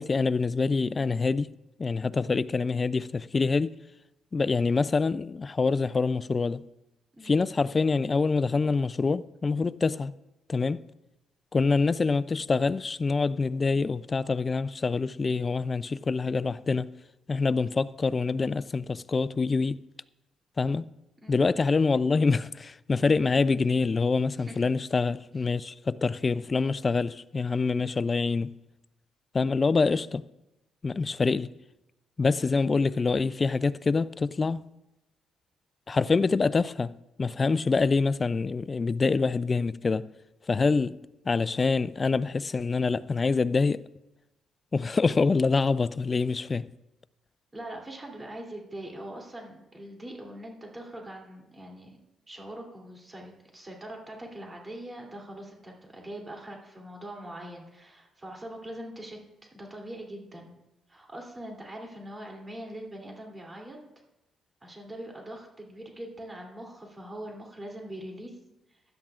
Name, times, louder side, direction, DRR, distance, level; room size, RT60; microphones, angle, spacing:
voice 1, 0.0-1.5 1.8-3.7 4.3-6.6 7.2-10.1 10.5-10.8 11.5-16.9 17.3-19.8 20.6-20.8 21.3-28.5 29.3-30.2 30.8-31.5 32.2-34.6 35.9-36.9 37.2-40.1 40.5-41.0 41.3-43.8 44.7-46.7, left 4 dB, 30° left, 0.4 m, -25 dB
voice 2, 7.1-7.4 21.2-21.4 24.4-24.7 47.5-52.0 52.3-60.6 60.9-63.8 64.6-68.4, right 1 dB, 20° right, 3.0 m, -42 dB
16.0 x 11.5 x 2.5 m
cardioid pair, 90°, 0 cm